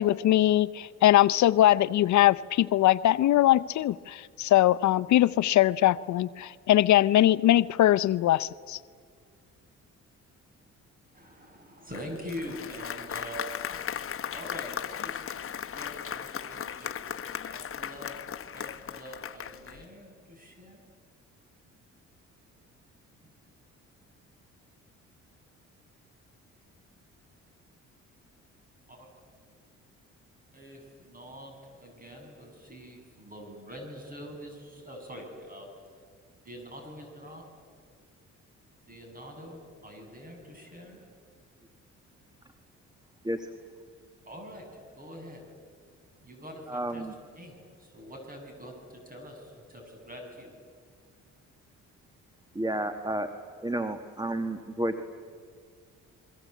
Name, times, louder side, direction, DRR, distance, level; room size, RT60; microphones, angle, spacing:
voice 1, 0.0-8.8, left 13 dB, 70° left, 16 dB, 0.6 m, -22 dB
voice 2, 11.1-13.4 14.3-15.4 15.7-18.2 18.5-20.8 28.9-29.0 30.5-35.7 36.4-37.4 38.9-41.0 44.2-44.7 45.0-45.5 46.2-47.0 47.4-50.5, equal, 30° right, 3 dB, 8.0 m, -44 dB
Applause, 11.9-19.8, left 8 dB, 45° left, 1.2 m, -37 dB
voice 3, 46.7-47.1 52.5-53.3 53.6-55.1, right 1 dB, 15° right, 8 dB, 1.5 m, -31 dB
28.5 x 22.5 x 8.3 m, 2.1 s
cardioid pair, 90°, 30 cm